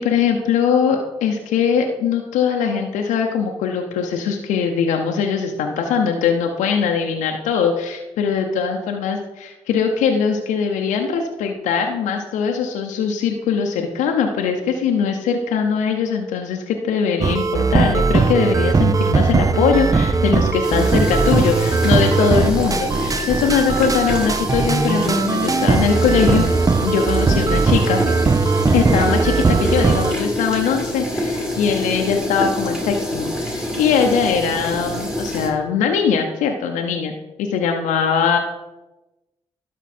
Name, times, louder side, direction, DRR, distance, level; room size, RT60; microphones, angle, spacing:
voice 1, 0.0-26.4 26.8-28.0 28.7-38.4, left 6 dB, 85° left, 3 dB, 0.7 m, -21 dB
sound 1, 17.2-30.1, right 4 dB, 30° right, 0.5 m, -19 dB
sound 2, 20.6-35.5, equal, 5° right, 2.4 m, -27 dB
12.0 x 4.5 x 4.3 m, 1.0 s
supercardioid pair, 50°, 12 cm